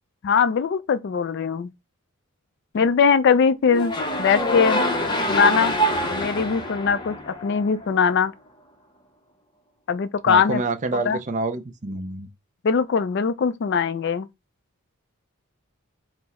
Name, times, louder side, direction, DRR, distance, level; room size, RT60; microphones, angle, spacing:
voice 1, 0.2-1.7 2.7-4.9 5.3-5.8 6.1-8.3 9.9-10.6 11.1-11.2 12.6-14.3, left 6 dB, 50° left, 0.3 m, -21 dB
sound 1, 3.7-7.9, equal, 20° left, 0.6 m, -25 dB
voice 2, 10.3-12.3, right 3 dB, 35° right, 0.4 m, -27 dB
4.4 x 2.0 x 4.1 m
head